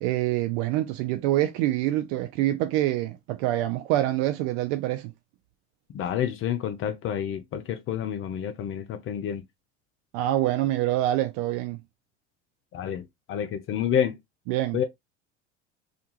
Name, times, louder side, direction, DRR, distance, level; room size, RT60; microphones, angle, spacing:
voice 1, 0.0-5.1 10.1-11.8 14.5-14.8, right 14 dB, 55° right, 0.5 m, -26 dB
voice 2, 5.9-9.4 12.7-13.0 13.3-14.1 14.7-14.8, left 9 dB, 40° left, 0.5 m, -28 dB
2.4 x 2.3 x 2.8 m
hypercardioid pair, 75°, 35 cm